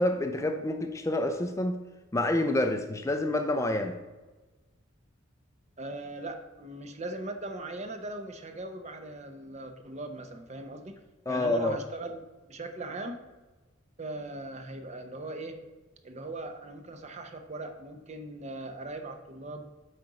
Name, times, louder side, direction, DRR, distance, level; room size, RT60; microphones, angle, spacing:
voice 1, 0.0-1.8 2.1-4.0 11.3-11.8, left 1 dB, 15° left, 6 dB, 0.4 m, -28 dB
voice 2, 5.8-11.0 11.3-13.3 14.0-15.6 16.0-19.7, right 2 dB, 35° right, 6 dB, 0.8 m, -39 dB
7.8 x 4.3 x 4.8 m, 1.2 s
head